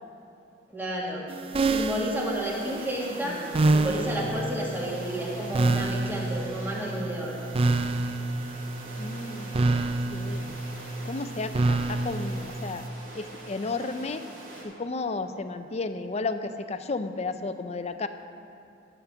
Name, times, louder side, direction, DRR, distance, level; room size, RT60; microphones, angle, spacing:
voice 1, 0.7-1.3 1.6-3.4 3.7-7.4, right 1 dB, 10° right, -4 dB, 1.9 m, -31 dB
sound 1, 1.3-12.9, right 2 dB, 30° right, 0.4 m, -28 dB
sound 2, 2.4-14.6, right 2 dB, 80° right, 3.1 m, -45 dB
voice 2, 9.0-9.6 10.1-10.5 11.0-12.9 13.1-14.3 14.6-18.1, left 3 dB, 35° left, 9 dB, 0.5 m, -33 dB
12.5 x 7.2 x 6.0 m, 2.6 s
head